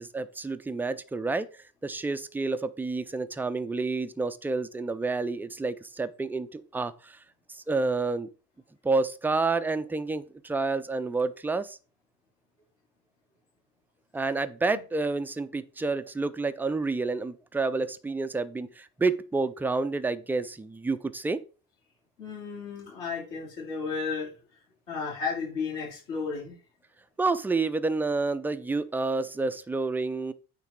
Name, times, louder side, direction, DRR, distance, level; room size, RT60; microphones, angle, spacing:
voice 1, 0.0-7.2 7.5-8.3 8.8-11.8 14.1-21.4 27.2-30.3, right 3 dB, 5° right, 0.3 m, -29 dB
voice 2, 22.2-24.3 24.9-26.6, left 5 dB, 60° left, 3.7 m, -33 dB
9.1 x 3.2 x 4.6 m
figure-of-eight pair, 50°, 46 cm